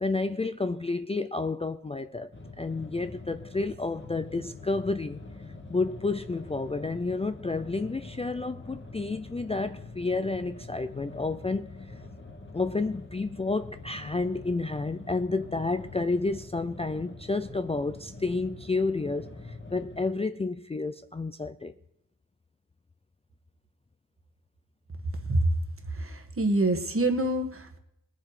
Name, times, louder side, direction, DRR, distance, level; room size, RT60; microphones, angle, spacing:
voice 1, 0.0-2.3 2.6-5.2 5.7-11.9 12.5-21.7, left 3 dB, 20° left, 0.4 m, -30 dB
sound 1, 2.3-20.1, left 3 dB, 35° left, 1.5 m, -45 dB
voice 2, 26.0-27.8, right 2 dB, 40° right, 1.6 m, -26 dB
20.5 x 7.5 x 5.0 m
wide cardioid pair, 125°, 33 cm